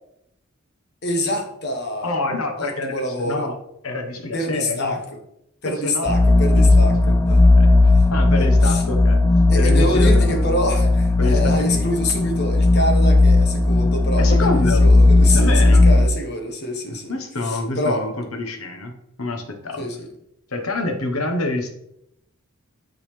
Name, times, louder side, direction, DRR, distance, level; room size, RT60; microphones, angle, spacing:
voice 1, 1.0-2.1 2.6-3.5 4.3-5.0 5.6-7.2 8.3-8.8 9.5-17.1 17.4-18.1 19.8-20.0, left 1 dB, 50° left, 3 dB, 1.3 m, -26 dB
voice 2, 2.0-3.6 3.8-5.0 5.6-6.1 6.6-6.7 7.1-9.2 9.5-10.5 11.2-11.8 14.2-14.9 15.3-15.9 16.9-19.9 20.5-21.7, left 2 dB, 80° left, 4 dB, 1.2 m, -27 dB
sound 1, 6.1-16.1, left 2 dB, 15° left, 0.3 m, -15 dB
10.5 x 4.0 x 3.3 m, 0.79 s
head